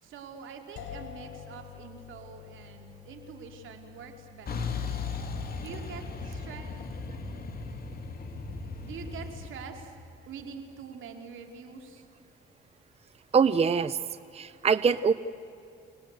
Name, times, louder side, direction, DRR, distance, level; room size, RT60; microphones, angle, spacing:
voice 1, 0.0-4.7 5.6-6.7 8.8-10.0 10.3-12.1, right 6 dB, 80° right, 4 dB, 2.8 m, -45 dB
sound 1, 0.8-10.5, left 9 dB, 80° left, 3.7 m, -50 dB
Truck, 4.5-9.5, left 4 dB, 50° left, 2.7 m, -36 dB
voice 2, 13.3-14.0 14.3-15.1, right 6 dB, 30° right, 14 dB, 0.6 m, -23 dB
29.5 x 19.0 x 8.1 m, 2.6 s
cardioid pair, 90°, 20 cm